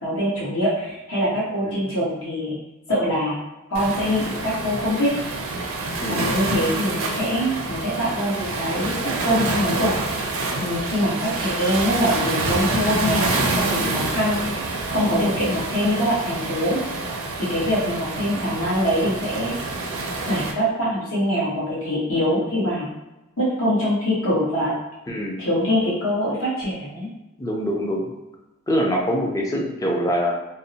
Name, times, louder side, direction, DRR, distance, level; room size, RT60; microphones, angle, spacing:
voice 1, 0.0-2.6 2.9-3.4 3.7-5.1 6.0-9.0 9.2-10.3 10.6-16.8 17.3-19.5 20.3-22.9 23.4-24.7 25.4-27.1, equal, 65° left, -7 dB, 1.2 m, -23 dB
Waves surf, 3.7-20.5, right 2 dB, 65° right, 0.4 m, -27 dB
voice 2, 25.1-25.4 27.4-28.1 28.7-30.4, equal, 15° left, -1 dB, 0.4 m, -24 dB
2.6 x 2.0 x 2.7 m, 1.0 s
head